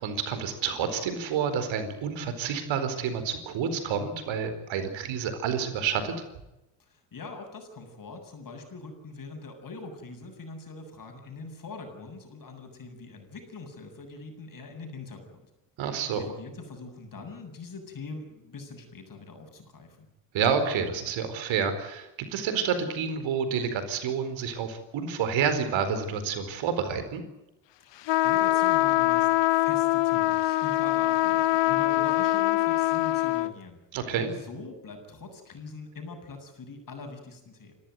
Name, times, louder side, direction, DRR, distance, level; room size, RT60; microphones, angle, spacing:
voice 1, 0.0-6.1 15.8-16.3 20.3-27.2 33.9-34.3, right 6 dB, 65° right, 9 dB, 4.5 m, -29 dB
voice 2, 6.8-15.4 16.1-20.1 27.8-33.8 34.3-37.8, left 3 dB, 40° left, 5 dB, 7.7 m, -43 dB
sound 1, 28.1-33.5, left 17 dB, 60° left, 1.0 m, -23 dB
28.0 x 14.0 x 9.3 m, 0.95 s
hypercardioid pair, 70°, 49 cm